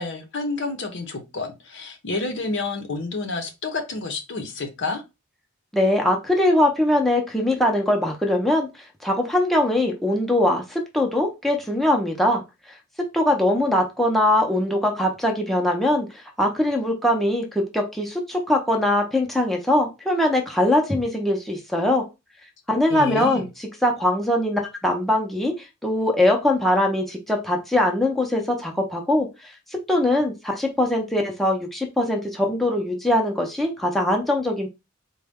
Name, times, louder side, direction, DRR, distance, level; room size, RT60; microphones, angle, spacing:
voice 1, 0.0-5.0 22.9-23.4, left 3 dB, 60° left, 0.7 m, -29 dB
voice 2, 5.7-8.7 9.0-12.4 13.1-22.0 22.7-25.5 25.8-29.5 29.9-34.7, left 1 dB, ahead, 0.6 m, -22 dB
3.9 x 2.2 x 3.4 m
head